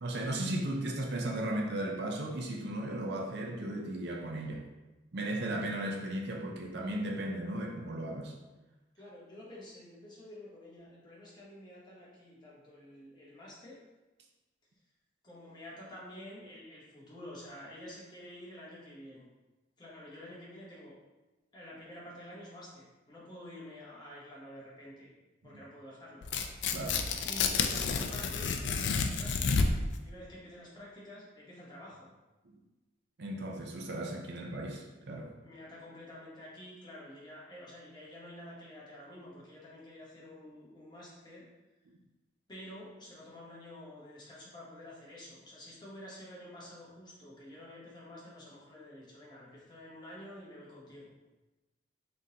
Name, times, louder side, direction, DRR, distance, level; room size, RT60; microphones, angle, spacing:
voice 1, 0.0-4.6 5.1-8.3 25.4-25.6 26.7-27.3 32.4-32.5 33.2-35.3, right 1 dB, 60° right, 1 dB, 0.5 m, -36 dB
voice 2, 8.9-13.8 15.2-19.3 19.8-20.9 21.5-25.1 25.4-26.3 27.2-29.7 30.0-32.1 35.4-41.4 42.5-51.1, left 1 dB, 20° left, -6 dB, 1.0 m, -49 dB
Tearing, 26.2-30.0, left 5 dB, 70° left, 0.4 m, -30 dB
3.8 x 3.7 x 2.8 m, 1.1 s
head